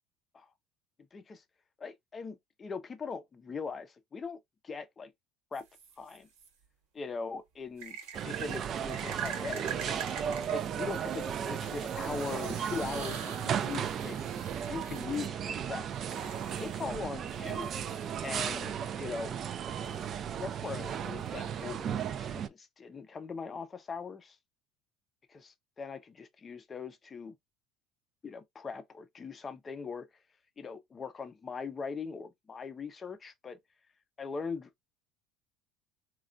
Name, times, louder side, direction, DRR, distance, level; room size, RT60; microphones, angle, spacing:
voice 1, 1.1-1.4 1.8-4.4 4.6-5.1 5.5-5.6 6.0-6.3 6.9-7.9 8.2-10.0 10.5-14.2 14.7-15.9 16.6-17.7 18.2-19.4 19.8-19.9 20.4-24.4 25.3-27.3 28.2-30.1 30.6-33.6 34.2-34.7, left 5 dB, 30° left, 0.5 m, -40 dB
sound 1, 5.5-6.5 7.8-18.4 19.8-21.6, right 8 dB, 85° right, 1.1 m, -45 dB
sound 2, 8.1-22.5, right 8 dB, 45° right, 0.3 m, -35 dB
3.2 x 2.3 x 2.5 m
supercardioid pair, 105°, 0 cm